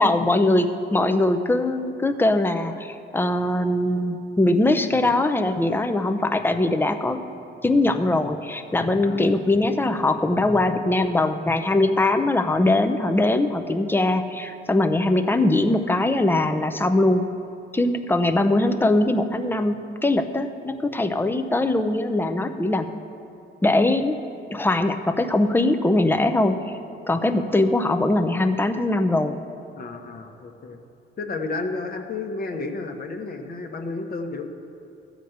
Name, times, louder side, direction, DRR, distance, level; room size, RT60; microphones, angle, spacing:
voice 1, 0.0-7.2 7.6-17.3 17.7-22.9 23.6-24.2 24.5-26.6 27.1-29.4, left 2 dB, 10° left, 8 dB, 0.6 m, -21 dB
voice 2, 9.0-9.5 29.8-30.8 31.2-34.5, left 3 dB, 50° left, 4 dB, 1.1 m, -32 dB
13.5 x 5.1 x 7.9 m, 2.6 s
cardioid pair, 90°, 20 cm